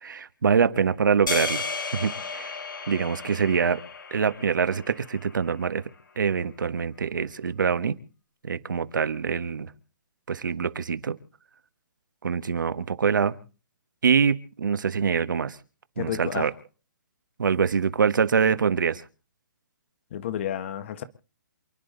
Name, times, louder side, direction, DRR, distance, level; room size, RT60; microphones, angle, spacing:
voice 1, 0.0-1.6 1.9-2.5 2.9-3.8 4.1-5.8 6.2-8.0 8.4-9.7 10.3-11.2 12.2-13.4 14.0-15.5 16.0-16.5 17.4-19.0, right 6 dB, 80° right, 1.5 m, -24 dB
sound 1, 1.3-5.6, left 5 dB, 85° left, 2.7 m, -34 dB
voice 2, 16.0-16.5 20.1-21.0, left 10 dB, 40° left, 1.5 m, -31 dB
28.0 x 10.5 x 4.0 m
hypercardioid pair, 165°, 10 cm